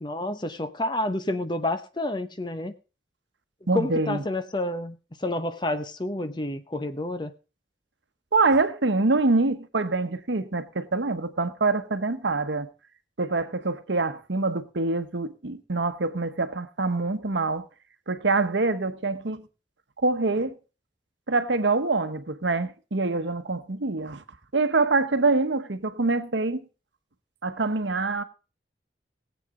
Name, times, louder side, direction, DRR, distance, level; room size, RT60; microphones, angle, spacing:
voice 1, 0.0-2.7 3.7-7.3, left 1 dB, 25° left, 0.8 m, -29 dB
voice 2, 3.7-4.2 8.3-12.7 13.2-17.7 18.1-19.4 20.0-20.6 21.3-24.2 24.5-26.7 27.4-28.2, right 3 dB, 80° right, 1.0 m, -25 dB
19.0 x 8.2 x 3.7 m
head